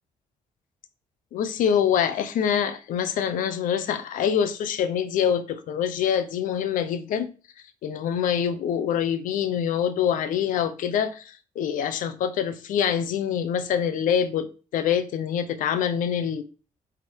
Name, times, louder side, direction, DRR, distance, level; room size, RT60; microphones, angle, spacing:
voice 1, 1.3-7.3 7.8-16.4, left 8 dB, 80° left, 0.8 m, -25 dB
7.7 x 3.8 x 4.5 m
cardioid pair, 175°, 14 cm